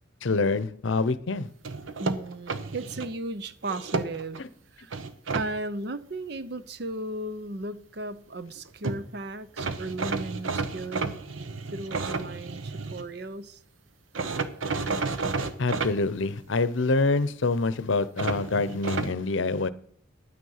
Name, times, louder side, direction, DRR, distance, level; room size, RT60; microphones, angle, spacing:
voice 1, 0.2-1.5 4.4-4.5 15.6-19.7, left 3 dB, 70° left, 0.7 m, -26 dB
sound 1, 1.6-3.1 3.6-4.4 4.9-5.5 8.6-8.7 8.8-9.0 9.6-13.0 14.1-15.9 18.2-19.1, right 4 dB, 80° right, 1.0 m, -31 dB
voice 2, 2.0-4.4 4.7-5.0 5.3-11.2 11.7-13.6, right 2 dB, 55° right, 0.7 m, -36 dB
11.0 x 9.4 x 5.6 m
head